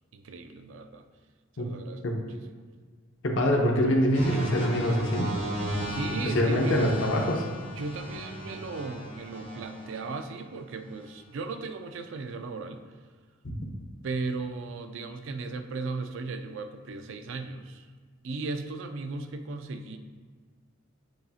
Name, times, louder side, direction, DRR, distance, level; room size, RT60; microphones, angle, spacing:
voice 1, 0.1-1.0 1.6-2.0 2.3-2.5 5.7-6.9 7.8-12.8 14.0-17.9 18.2-20.0, right 3 dB, 65° right, 7 dB, 0.4 m, -36 dB
voice 2, 3.2-5.3 6.2-7.4, equal, 65° left, 1 dB, 0.7 m, -24 dB
sound 1, 4.1-10.2 10.9-11.2, equal, 40° right, 1.5 m, -36 dB
7.8 x 2.7 x 2.4 m, 1.5 s
head